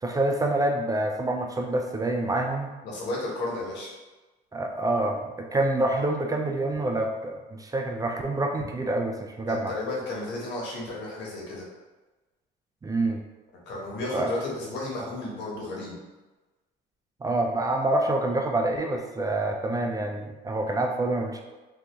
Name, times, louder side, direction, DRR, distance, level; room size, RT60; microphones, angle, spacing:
voice 1, 0.0-2.7 4.5-9.7 12.8-13.2 14.1-14.3 17.2-21.4, right 2 dB, 20° right, 2 dB, 0.4 m, -27 dB
voice 2, 2.8-3.9 9.5-11.7 13.6-16.0, left 2 dB, 75° left, -3 dB, 1.2 m, -33 dB
3.3 x 2.7 x 3.0 m, 1.2 s
supercardioid pair, 90°, 19 cm